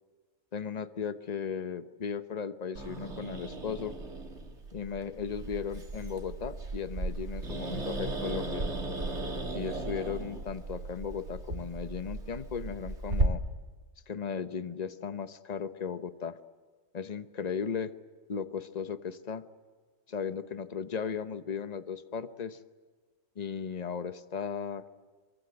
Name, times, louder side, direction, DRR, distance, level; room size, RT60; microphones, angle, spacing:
voice 1, 0.5-4.0 4.7-8.7 9.5-13.4 14.1-16.4 16.9-17.9 18.3-19.4 20.1-22.6 23.4-24.9, left 6 dB, 30° left, 12 dB, 0.9 m, -36 dB
Growling, 2.7-13.2, right 2 dB, 45° right, 2.8 m, -36 dB
25.0 x 23.5 x 8.0 m, 1.4 s
omnidirectional pair, 1.6 m